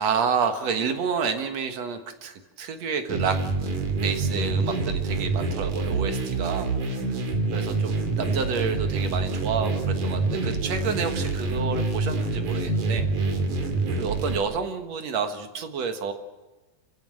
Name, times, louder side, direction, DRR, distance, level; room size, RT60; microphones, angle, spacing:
voice 1, 0.0-3.4 4.0-6.7 7.0-7.1 7.5-13.1 14.0-16.1, right 6 dB, 65° right, 7 dB, 2.6 m, -29 dB
sound 1, 3.1-14.4, right 3 dB, 90° right, 4.1 m, -26 dB
28.0 x 15.5 x 7.7 m, 1.2 s
omnidirectional pair, 3.4 m